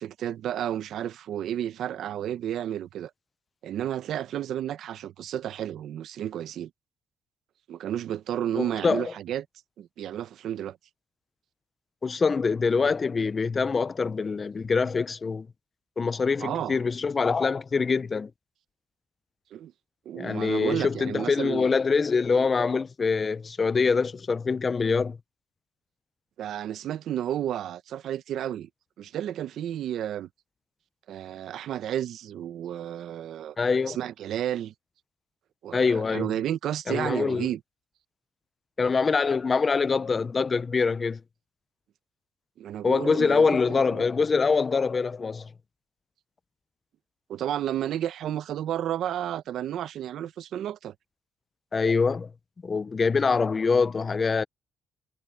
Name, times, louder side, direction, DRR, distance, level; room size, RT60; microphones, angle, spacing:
voice 1, 0.0-3.1 3.6-6.7 7.7-9.5 9.8-10.8 16.4-16.8 19.5-19.7 20.1-21.7 26.4-28.7 29.0-30.3 31.1-33.6 33.9-34.7 35.6-37.6 42.6-44.1 47.3-50.9, right 11 dB, 75° right, 0.8 m, -32 dB
voice 2, 8.6-9.1 12.0-15.5 16.0-18.3 20.1-25.2 33.6-34.0 35.7-36.3 36.9-37.5 38.8-41.2 42.8-45.5 51.7-52.3 52.6-54.4, left 5 dB, 35° left, 0.5 m, -24 dB
cardioid pair, 90°, 0 cm